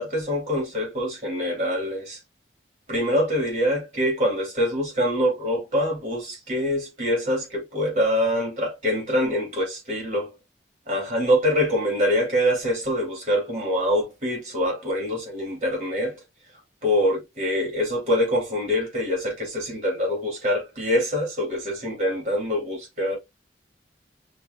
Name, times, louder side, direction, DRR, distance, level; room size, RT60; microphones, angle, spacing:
voice 1, 0.0-2.2 2.9-10.3 10.9-16.2 16.8-23.2, equal, 40° right, 2.7 m, -24 dB
5.7 x 3.0 x 2.3 m
head